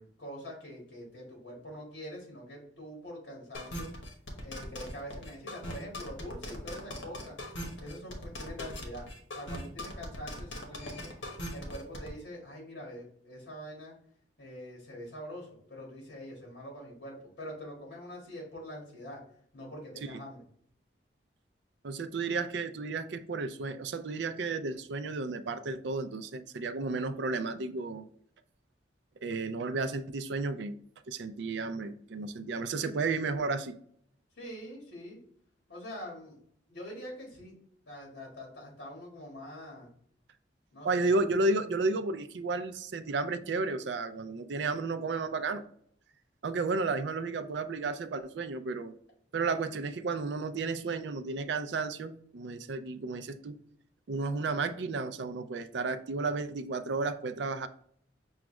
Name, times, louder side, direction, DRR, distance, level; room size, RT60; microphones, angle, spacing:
voice 1, 0.0-3.9 4.4-7.4 7.8-9.1 9.4-11.1 11.5-13.9 14.4-19.2 19.5-20.4 34.4-35.2 35.7-36.4 36.7-37.6 37.9-39.9 40.7-41.1, equal, 60° left, -2 dB, 1.6 m, -44 dB
sound 1, 3.5-12.1, left 1 dB, 75° left, 1.1 m, -40 dB
voice 2, 21.8-28.0 29.2-30.8 31.1-33.8 40.8-45.6 46.4-48.9 49.3-53.5 54.1-57.7, right 3 dB, 65° right, 10 dB, 0.4 m, -32 dB
6.0 x 2.4 x 3.1 m, 0.63 s
head